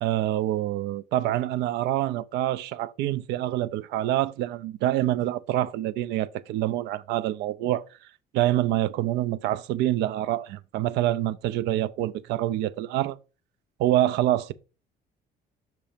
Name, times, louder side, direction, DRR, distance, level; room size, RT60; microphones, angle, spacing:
voice 1, 0.0-7.8 8.3-13.2 13.8-14.5, right 14 dB, 85° right, 0.5 m, -26 dB
6.6 x 2.9 x 5.0 m
cardioid pair, 110°, 17 cm